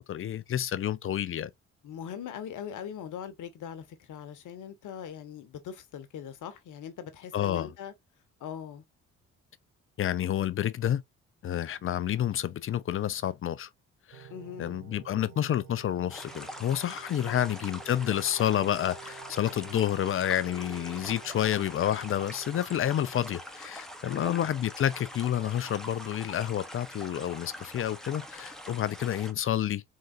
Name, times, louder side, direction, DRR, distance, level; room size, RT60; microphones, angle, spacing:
voice 1, 0.1-1.5 7.3-7.7 10.0-11.0 11.4-13.7 14.1-14.3 14.6-29.8, left 10 dB, 35° left, 0.5 m, -29 dB
voice 2, 1.8-7.9 8.4-8.8 14.3-14.8 17.2-17.5 24.0-24.4, left 8 dB, 60° left, 1.1 m, -41 dB
sound 1, 14.1-22.6, right 9 dB, 70° right, 0.8 m, -51 dB
sound 2, 16.1-29.3, equal, ahead, 1.1 m, -44 dB
3.8 x 3.8 x 2.4 m
hypercardioid pair, 45°, 35 cm